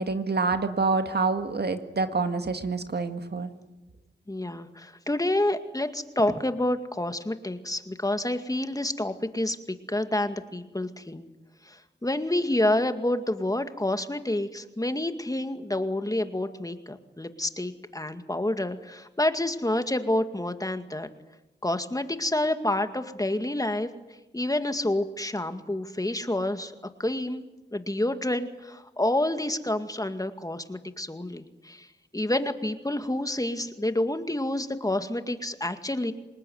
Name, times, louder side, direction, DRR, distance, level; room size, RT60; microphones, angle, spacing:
voice 1, 0.0-3.5, right 4 dB, 60° right, 7 dB, 2.0 m, -27 dB
voice 2, 4.3-11.3 11.6-21.1 21.6-23.9 24.3-26.7 27.0-27.4 27.7-31.9 32.1-36.1, left 1 dB, 20° left, 8 dB, 2.1 m, -28 dB
27.0 x 20.0 x 9.5 m, 1.0 s
cardioid pair, 60°, 19 cm